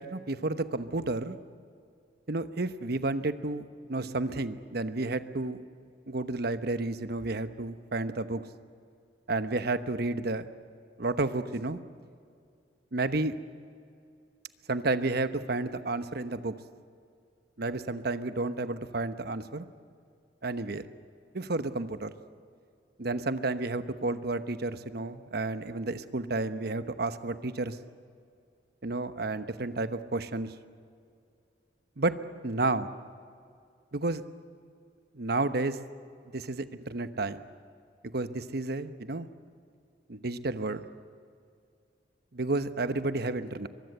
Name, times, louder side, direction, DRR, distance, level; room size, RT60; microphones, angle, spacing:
voice 1, 0.0-1.4 2.3-5.6 6.1-8.4 9.3-10.5 11.0-11.8 12.9-13.4 14.7-16.6 17.6-19.6 20.4-20.8 21.3-22.1 23.0-27.8 28.8-30.5 32.0-32.2 32.4-32.9 33.9-34.2 35.1-35.8 36.3-37.5 38.1-39.3 40.1-40.9 42.3-43.7, right 2 dB, 60° right, 11 dB, 1.1 m, -31 dB
23.5 x 22.5 x 7.9 m, 2.3 s
head